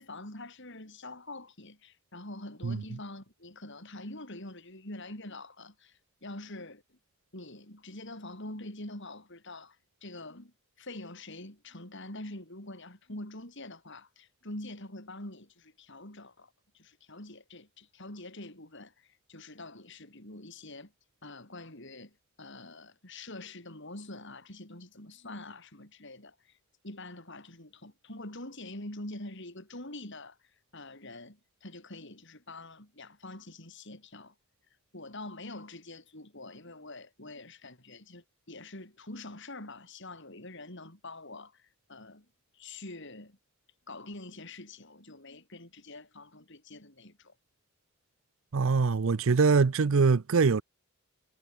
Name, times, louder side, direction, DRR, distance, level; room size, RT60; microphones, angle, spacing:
voice 1, 0.0-7.0 7.3-20.9 21.2-26.6 26.8-30.4 30.7-34.3 34.9-42.3 42.5-43.4 43.9-47.3, left 2 dB, 55° left, 5.7 m, -45 dB
voice 2, 48.5-50.6, right 4 dB, 65° right, 0.5 m, -23 dB
head